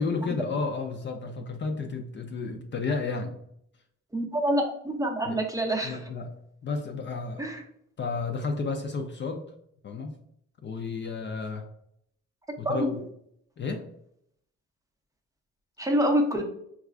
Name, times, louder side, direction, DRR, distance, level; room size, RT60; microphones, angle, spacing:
voice 1, 0.0-3.4 5.3-5.4 5.8-6.3 6.6-7.5 8.0-9.5 9.8-10.1 10.6-11.7 12.6-13.0 13.6-13.9, left 4 dB, 40° left, 4 dB, 0.5 m, -32 dB
voice 2, 4.1-6.0 7.4-7.6 12.6-12.9 15.8-16.4, right 1 dB, 10° right, 2 dB, 0.6 m, -26 dB
4.6 x 2.4 x 2.3 m, 0.74 s
cardioid pair, 90°, 30 cm